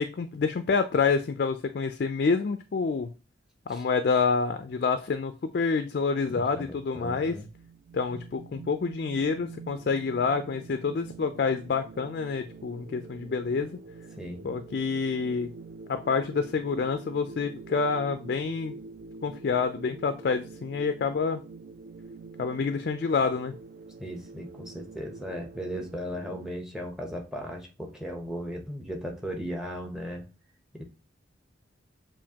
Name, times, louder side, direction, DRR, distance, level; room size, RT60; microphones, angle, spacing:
voice 1, 0.0-3.1 3.7-7.4 7.9-13.8 14.4-15.5 15.9-18.7 19.2-21.4 22.4-23.6, left 5 dB, 50° left, 9 dB, 0.3 m, -27 dB
voice 2, 6.2-7.5 14.1-14.5 24.0-30.3 30.7-30.8, equal, 5° right, 2 dB, 0.8 m, -37 dB
sound 1, 7.1-26.5, right 4 dB, 45° right, 0.3 m, -46 dB
7.1 x 2.5 x 2.8 m, 0.33 s
head